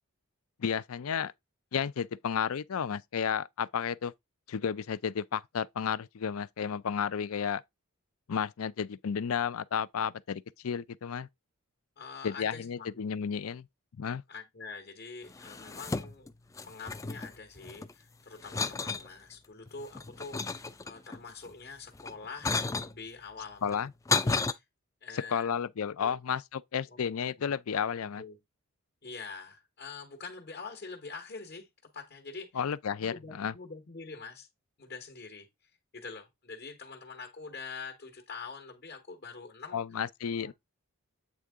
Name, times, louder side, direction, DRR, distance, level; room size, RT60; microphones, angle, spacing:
voice 1, 0.6-1.3 1.7-4.1 4.5-7.6 8.3-11.3 12.2-13.7 14.0-14.2 23.6-23.9 25.3-28.2 32.5-33.5 39.7-40.5, left 7 dB, 75° left, 0.5 m, -32 dB
voice 2, 12.0-13.0 14.3-16.3 16.7-20.4 20.8-23.8 24.2-24.6 25.0-25.5 26.0-26.2 26.9-27.2 28.1-28.4 29.0-32.6 33.0-34.5 34.8-39.8 40.3-40.5, left 4 dB, 45° left, 1.2 m, -45 dB
sound 1, 15.3-16.3 16.6-17.9 18.4-19.1 19.7-21.2 22.0-22.9 23.7-24.5, left 4 dB, 15° left, 0.3 m, -32 dB
8.1 x 3.7 x 3.6 m
head